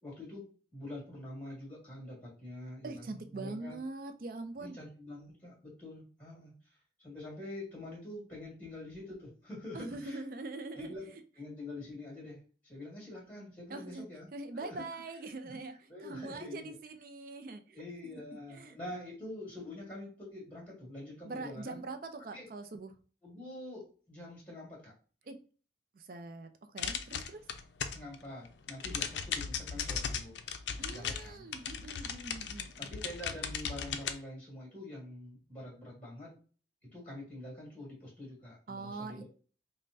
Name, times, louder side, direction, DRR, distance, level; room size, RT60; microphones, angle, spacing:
voice 1, 0.0-3.8 4.6-10.2 10.8-14.3 14.5-14.8 15.4-16.7 17.7-21.8 22.3-22.5 23.2-24.9 27.9-30.4 30.8-31.5 32.8-36.4 36.9-39.2, left 1 dB, 10° left, -5 dB, 1.8 m, -46 dB
voice 2, 2.8-4.8 9.7-11.2 13.7-14.0 14.3-17.8 18.1-18.2 18.5-18.8 21.2-22.9 25.3-25.4 25.9-27.4 30.8-32.9 38.7-39.2, right 3 dB, 50° right, 7 dB, 0.4 m, -43 dB
sound 1, 26.8-28.2 28.5-34.1, left 7 dB, 80° left, 0.4 m, -37 dB
5.2 x 2.1 x 2.6 m, 0.39 s
head